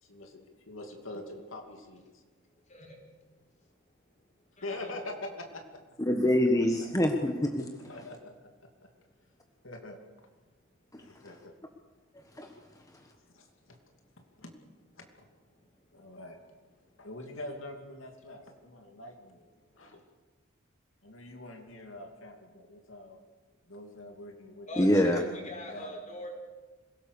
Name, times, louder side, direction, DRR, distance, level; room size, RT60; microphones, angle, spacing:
voice 1, 0.0-2.2 4.6-5.8 6.8-6.9 7.9-8.5 8.8-8.9 9.6-10.0 11.0-11.5 13.3-13.8 14.2-14.5 14.9-15.3 15.9-16.4 17.0-19.4 19.7-20.0 21.0-23.2 23.7-25.0 25.7-26.0, left 2 dB, 80° left, 3 dB, 2.8 m, -44 dB
voice 2, 6.0-7.7 10.9-11.0 12.4-12.5 24.8-25.2, left 1 dB, 15° left, 4 dB, 1.4 m, -25 dB
voice 3, 24.7-26.3, left 1 dB, 40° left, 3 dB, 5.2 m, -42 dB
26.5 x 17.5 x 6.8 m, 1.3 s
head